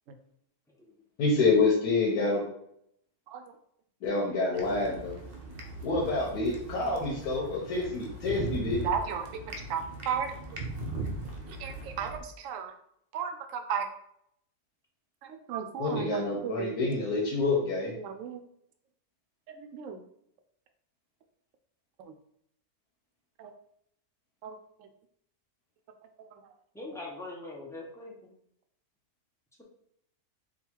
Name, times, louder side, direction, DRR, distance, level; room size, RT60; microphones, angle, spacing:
voice 1, 0.7-1.0 26.7-28.1, left 2 dB, 5° left, -3 dB, 0.3 m, -42 dB
voice 2, 1.2-2.4 4.0-5.2 5.8-8.8 15.8-17.9, left 3 dB, 85° left, -3 dB, 1.3 m, -27 dB
sound 1, 4.5-12.2, right 2 dB, 45° right, 0.5 m, -39 dB
voice 3, 8.8-10.3 11.5-12.7 13.1-13.9 15.2-16.7 18.0-18.4 19.5-20.0 22.0-22.1 23.4-23.5 24.4-24.9 26.2-26.3, right 7 dB, 70° right, 7 dB, 0.9 m, -35 dB
3.9 x 2.3 x 4.4 m, 0.71 s
omnidirectional pair, 1.6 m